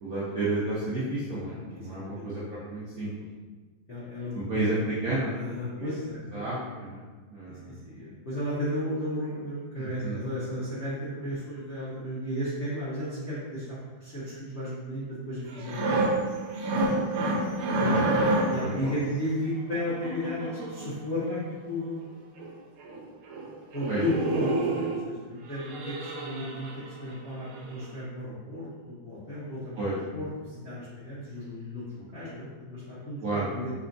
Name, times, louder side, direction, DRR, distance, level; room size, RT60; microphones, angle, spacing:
voice 1, 0.0-3.1 4.3-5.9 6.3-7.0 7.3-7.8 9.8-10.2 17.7-18.1 18.4-18.9 23.9-24.0 29.8-30.0 33.2-33.5, right 2 dB, 70° right, -9 dB, 0.8 m, -32 dB
voice 2, 1.7-2.2 3.9-4.6 5.3-6.4 7.5-16.2 17.8-18.1 18.5-22.1 23.7-26.7 27.0-33.7, left 1 dB, 60° left, -11 dB, 0.7 m, -34 dB
sound 1, 15.5-18.7 19.7-20.9 22.0-22.1 22.4-22.5 22.8-23.0 23.3-23.5 23.7-25.0 25.5-27.1 27.5-27.7, right 2 dB, 85° right, 1.5 m, -28 dB
5.4 x 2.2 x 2.5 m, 1.4 s
omnidirectional pair, 2.3 m